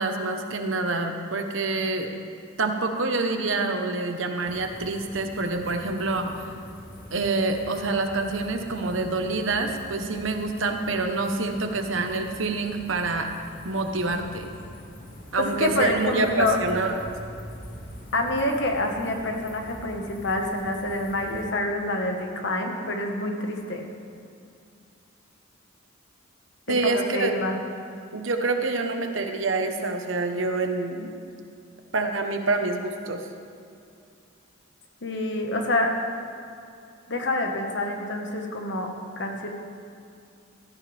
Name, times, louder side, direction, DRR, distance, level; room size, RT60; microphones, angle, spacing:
voice 1, 0.0-2.1 2.6-6.5 7.1-13.3 13.6-14.5 15.3-17.0 26.7-27.3 28.1-31.1 31.9-33.2, right 3 dB, 70° right, 5 dB, 1.2 m, -26 dB
sound 1, 4.4-21.5, equal, 45° left, 1.9 m, -44 dB
voice 2, 15.4-16.6 18.1-23.8 26.7-27.6 35.0-35.9 37.1-39.5, left 2 dB, 60° left, 2 dB, 1.5 m, -27 dB
16.5 x 13.5 x 3.5 m, 2.4 s
head